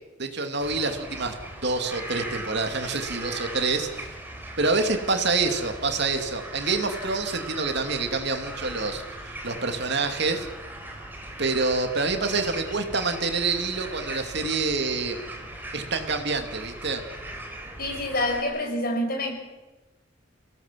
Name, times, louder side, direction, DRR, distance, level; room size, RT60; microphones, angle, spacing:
voice 1, 0.2-1.4 1.6-4.1 4.6-10.5 11.4-15.2 15.7-17.0, right 3 dB, 60° right, 5 dB, 2.7 m, -27 dB
sound 1, 0.6-18.4, right 1 dB, 10° right, 4.1 m, -39 dB
voice 2, 17.8-19.3, left 1 dB, 50° left, 2 dB, 6.1 m, -27 dB
30.0 x 18.0 x 7.6 m, 1.1 s
head